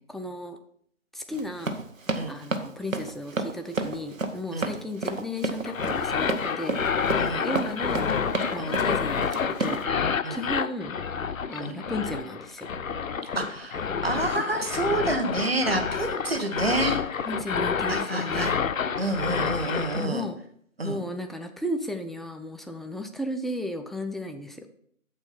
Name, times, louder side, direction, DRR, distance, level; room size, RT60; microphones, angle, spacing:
voice 1, 0.1-0.6 1.1-1.9 2.3-6.8 7.4-8.1 8.5-11.0 11.5-12.7 17.3-18.6 19.9-20.4 20.8-24.7, left 1 dB, ahead, 6 dB, 0.3 m, -34 dB
Run, 1.3-9.8, right 3 dB, 70° right, 1.0 m, -31 dB
sound 1, 5.6-20.1, left 6 dB, 75° left, 0.5 m, -29 dB
voice 2, 13.3-17.0 17.9-18.5 19.0-20.2 20.8-21.0, right 2 dB, 45° right, 6 dB, 1.0 m, -28 dB
7.6 x 4.4 x 5.7 m, 0.65 s
figure-of-eight pair, 165°, 41 cm